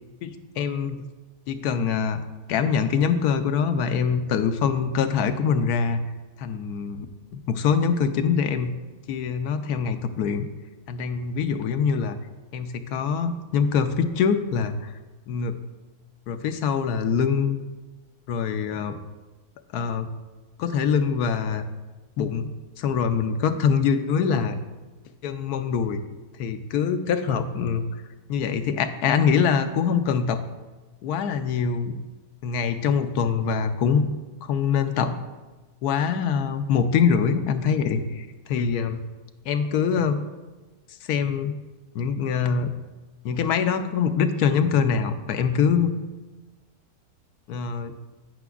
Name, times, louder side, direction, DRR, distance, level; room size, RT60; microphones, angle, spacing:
voice 1, 0.2-1.0 1.5-2.2 2.5-6.0 6.4-7.1 7.3-8.7 9.1-10.5 10.9-12.2 12.5-14.9 15.3-15.6 16.3-17.6 18.3-19.0 19.7-20.1 20.6-21.6 22.2-24.6 25.2-26.0 26.4-27.8 28.3-30.4 31.0-32.0 32.4-34.1 34.4-35.2 35.8-39.0 39.5-40.2 41.1-41.6 41.9-42.7 43.2-45.9 47.5-47.9, left 6 dB, 85° left, 9 dB, 1.1 m, -24 dB
15.0 x 5.9 x 2.4 m, 1.2 s
omnidirectional pair, 1.6 m